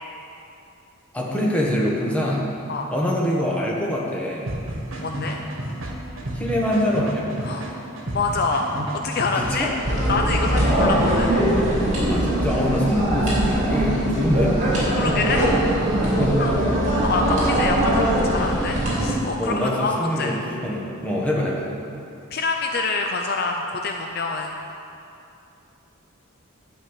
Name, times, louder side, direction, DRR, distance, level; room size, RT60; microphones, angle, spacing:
voice 1, 1.1-2.4 2.9-4.5 6.3-7.3 9.4-9.7 12.1-14.6 15.1-15.2 16.2-16.4 17.1-17.7 19.4-21.7, equal, 5° left, -4 dB, 1.4 m, -24 dB
sound 1, 4.5-11.7, right 1 dB, 65° right, 1.5 m, -32 dB
voice 2, 5.0-5.4 7.4-7.7 8.1-9.7 10.1-11.3 12.8-12.9 14.9-15.5 16.4-16.5 17.0-20.4 22.3-24.6, left 3 dB, 45° left, 3 dB, 0.5 m, -26 dB
sound 2, 9.8-19.1, right 1 dB, 35° right, 2.8 m, -21 dB
11.5 x 5.4 x 8.1 m, 2.7 s
head